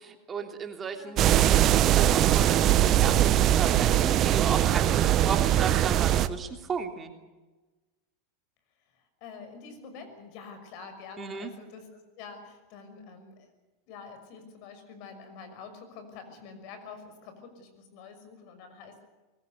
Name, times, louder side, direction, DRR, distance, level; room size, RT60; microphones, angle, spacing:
voice 1, 0.0-7.1 11.2-11.5, right 6 dB, 25° right, 4 dB, 3.0 m, -35 dB
voice 2, 0.9-1.2 9.2-13.3 13.9-19.0, left 5 dB, 55° left, 8 dB, 6.1 m, -46 dB
sound 1, 1.2-6.3, right 12 dB, 40° right, 1.1 m, -21 dB
23.0 x 20.0 x 8.3 m, 1.2 s
hypercardioid pair, 95°, 0 cm